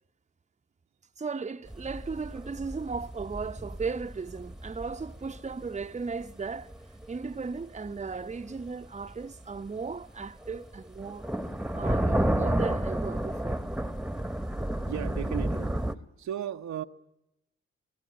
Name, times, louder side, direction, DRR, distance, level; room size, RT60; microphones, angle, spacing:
voice 1, 1.2-6.7 7.1-11.3 11.7-13.6, right 4 dB, 25° right, 0.8 m, -36 dB
sound 1, 1.7-16.0, right 1 dB, ahead, 1.1 m, -31 dB
voice 2, 14.9-15.8 16.2-16.8, right 10 dB, 70° right, 0.8 m, -35 dB
24.5 x 16.5 x 9.7 m
supercardioid pair, 40°, 29 cm